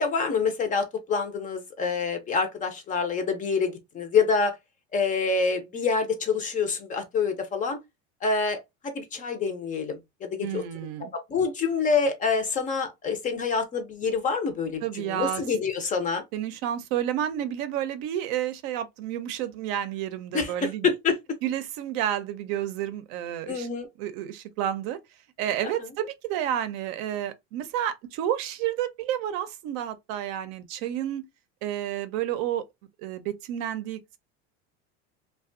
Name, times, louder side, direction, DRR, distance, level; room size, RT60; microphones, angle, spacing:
voice 1, 0.0-4.6 4.9-7.8 8.2-10.6 11.1-16.2 20.3-21.2 23.5-23.9 25.8-25.9, left 5 dB, 25° left, 0.5 m, -27 dB
voice 2, 10.4-11.1 14.8-15.4 16.3-20.9 21.4-23.7 24.0-25.0 25.4-31.2 31.6-32.6 33.0-34.2, right 11 dB, 65° right, 0.5 m, -30 dB
2.4 x 2.2 x 2.5 m
supercardioid pair, 140°, 32 cm